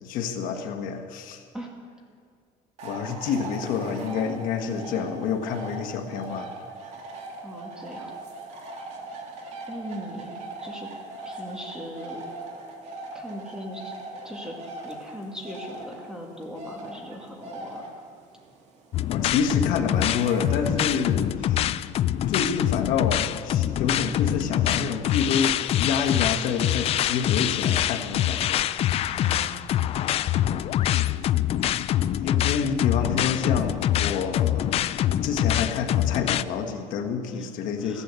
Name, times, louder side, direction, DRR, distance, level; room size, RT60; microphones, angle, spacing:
voice 1, 0.0-1.4 2.8-6.5 19.1-21.6 22.3-28.6 32.2-34.8 35.1-38.0, left 6 dB, 70° left, 5 dB, 1.4 m, -28 dB
sound 1, 2.8-21.3, right 2 dB, 50° right, 2.4 m, -40 dB
voice 2, 7.4-8.1 9.7-10.3 10.6-10.9 11.2-12.2 13.1-13.9 14.2-17.8 29.1-29.7 37.3-37.5 37.8-38.0, equal, 5° right, 0 dB, 2.3 m, -39 dB
sound 2, 18.9-36.4, left 12 dB, 45° left, 0.4 m, -25 dB
15.0 x 11.5 x 8.2 m, 2.1 s
cardioid pair, 155°, 15 cm